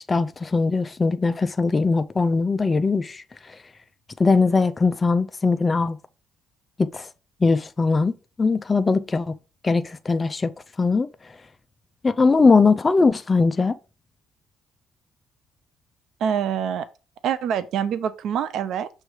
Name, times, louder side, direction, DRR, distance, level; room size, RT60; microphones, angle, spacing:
voice 1, 0.1-3.6 4.2-6.0 6.8-7.1 7.4-9.3 9.6-10.5 10.8-11.1 12.0-13.8, left 4 dB, 20° left, 0.4 m, -20 dB
voice 2, 16.2-16.9 17.2-18.9, right 8 dB, 65° right, 0.5 m, -25 dB
6.3 x 3.2 x 4.8 m
cardioid pair, 120°, 0 cm